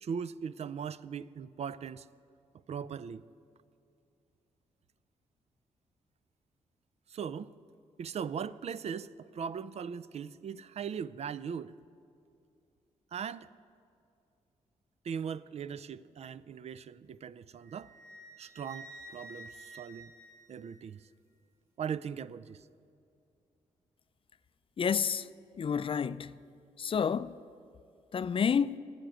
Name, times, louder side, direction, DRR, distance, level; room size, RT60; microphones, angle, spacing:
voice 1, 0.0-2.1 2.7-3.2 7.1-7.5 8.0-11.8 13.1-13.5 15.0-17.9 18.4-20.1 20.5-21.0 21.8-22.6, right 7 dB, 50° right, 0.4 m, -39 dB
Wind instrument woodwind instrument, 17.6-21.1, right 1 dB, 20° right, 1.6 m, -51 dB
voice 2, 24.8-25.3 25.6-26.4 26.8-27.4 28.1-28.8, left 7 dB, 40° left, 0.4 m, -29 dB
9.8 x 7.7 x 9.4 m
supercardioid pair, 50°, 14 cm